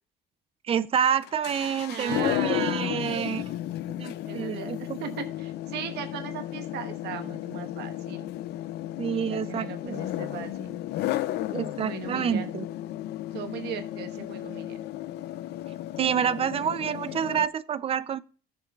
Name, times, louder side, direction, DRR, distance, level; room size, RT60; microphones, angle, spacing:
voice 1, 0.7-3.4 4.0-5.0 9.0-10.0 11.5-12.6 16.0-18.2, right 8 dB, 35° right, 0.5 m, -28 dB
sound 1, 1.2-17.5, left 14 dB, 75° left, 0.6 m, -34 dB
voice 2, 1.9-3.6 4.3-8.3 9.3-10.8 11.7-12.5 13.3-14.8 16.5-17.0, right 8 dB, 80° right, 1.4 m, -38 dB
17.5 x 6.8 x 2.4 m
cardioid pair, 110°, 17 cm